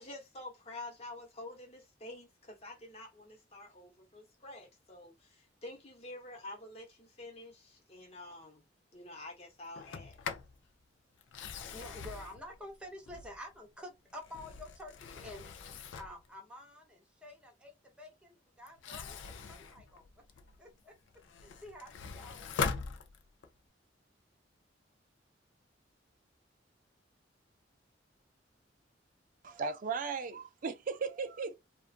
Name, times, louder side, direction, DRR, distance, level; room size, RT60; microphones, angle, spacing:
voice 1, 0.0-8.7 8.9-10.2, left 2 dB, 35° left, 1.0 m, -48 dB
Sliding door, 9.7-10.6 11.2-13.5 14.1-16.3 18.7-20.6 21.1-23.6, left 5 dB, 75° left, 0.4 m, -41 dB
voice 2, 11.7-20.2 20.6-20.9 21.4-22.7, left 1 dB, 5° right, 0.7 m, -49 dB
voice 3, 29.4-31.5, right 5 dB, 45° right, 0.4 m, -36 dB
2.4 x 2.3 x 2.4 m
head